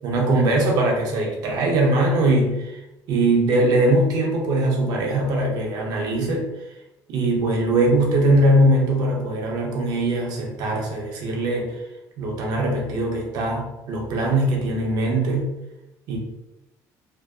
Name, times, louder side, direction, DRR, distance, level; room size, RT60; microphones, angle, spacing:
voice 1, 0.0-2.8 3.1-6.5 7.1-11.8 12.2-15.5 16.1-16.2, right 1 dB, 60° right, 0 dB, 0.6 m, -21 dB
2.6 x 2.1 x 2.2 m, 0.95 s
cardioid pair, 155°, 8 cm